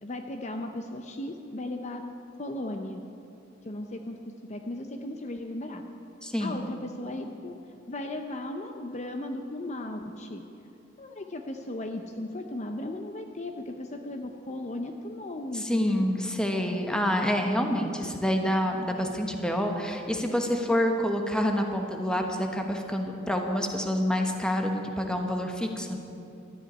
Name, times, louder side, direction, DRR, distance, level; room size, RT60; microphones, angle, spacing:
voice 1, 0.0-2.0 2.4-3.0 3.6-5.8 6.4-7.5 7.9-10.4 11.0-16.0, left 1 dB, 35° left, 5 dB, 0.6 m, -36 dB
voice 2, 6.2-6.6 15.5-26.0, equal, 5° left, 3 dB, 1.1 m, -27 dB
13.0 x 8.2 x 9.7 m, 2.7 s
head